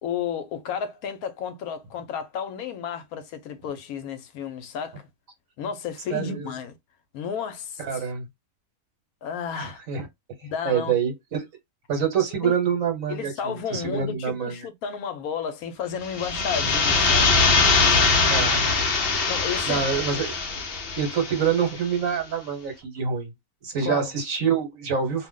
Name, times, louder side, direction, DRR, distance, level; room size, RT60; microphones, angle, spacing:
voice 1, 0.0-5.1 5.6-6.8 7.1-8.1 9.2-9.8 10.4-10.9 12.4-12.5 13.1-17.3 17.7-18.5 19.3-19.9 23.8-24.1, left 7 dB, 75° left, 1.0 m, -32 dB
voice 2, 6.1-6.5 7.8-8.3 9.5-10.1 10.6-11.5 11.9-14.6 18.3-18.8 19.7-20.3 21.0-23.3 23.6-25.3, right 7 dB, 60° right, 1.3 m, -26 dB
sound 1, 16.0-21.7, left 4 dB, 60° left, 0.6 m, -22 dB
2.6 x 2.0 x 3.5 m
omnidirectional pair, 1.6 m